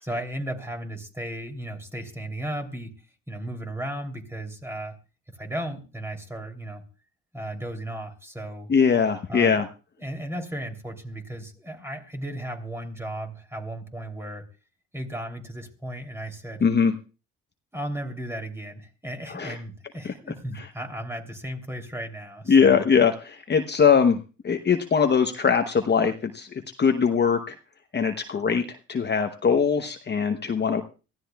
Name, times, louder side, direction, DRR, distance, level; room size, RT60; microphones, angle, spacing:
voice 1, 0.0-2.9 3.3-4.9 5.4-6.8 7.3-8.7 9.3-9.6 10.0-14.4 14.9-16.7 17.7-22.8, right 1 dB, 10° right, 3 dB, 3.1 m, -35 dB
voice 2, 8.7-9.7 16.6-16.9 19.3-19.6 20.6-20.7 22.5-24.2 24.4-27.6 27.9-30.8, left 6 dB, 35° left, 6 dB, 0.9 m, -21 dB
23.5 x 14.5 x 2.3 m, 0.34 s
cardioid pair, 90°, 30 cm